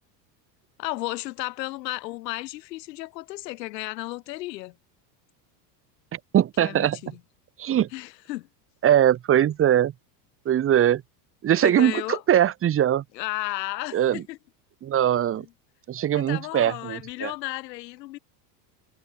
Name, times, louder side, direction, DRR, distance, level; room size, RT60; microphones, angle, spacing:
voice 1, 0.8-4.7 6.6-7.2 7.9-8.5 11.6-12.2 13.2-14.4 16.1-18.2, left 18 dB, 85° left, 4.0 m, -33 dB
voice 2, 6.1-7.0 7.6-7.9 8.8-9.9 10.4-11.0 11.4-13.0 13.9-14.2 14.8-15.4 15.9-17.3, right 11 dB, 25° right, 5.1 m, -21 dB
supercardioid pair, 165°, 49 cm